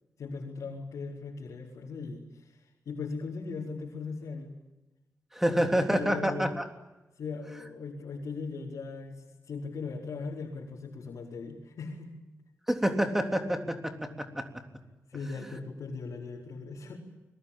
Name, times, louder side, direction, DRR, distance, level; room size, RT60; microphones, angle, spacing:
voice 1, 0.2-4.6 5.4-6.5 7.2-12.1 15.1-17.0, left 4 dB, 85° left, -2 dB, 4.8 m, -39 dB
voice 2, 5.3-6.7 12.7-14.5, equal, 5° right, 5 dB, 3.5 m, -28 dB
29.5 x 22.5 x 8.8 m, 1.0 s
wide cardioid pair, 115°, 5 cm